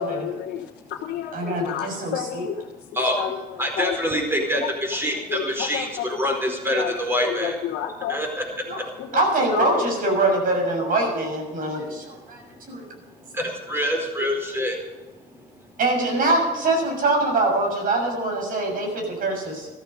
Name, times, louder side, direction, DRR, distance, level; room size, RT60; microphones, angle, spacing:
voice 1, 0.0-2.7 3.1-3.4 3.8-3.9 4.6-6.9 7.2-8.2 8.7-9.9, left 10 dB, 70° left, 0 dB, 1.5 m, -31 dB
voice 2, 1.3-2.4 8.7-8.8 9.1-12.4 12.7-12.8 15.8-19.7, right 2 dB, 55° right, 2 dB, 6.4 m, -23 dB
voice 3, 3.6-7.6 8.1-8.5 12.9-13.0 13.3-14.8, equal, 15° right, 2 dB, 4.6 m, -25 dB
14.0 x 14.0 x 5.4 m, 1.2 s
cardioid pair, 110°, 17 cm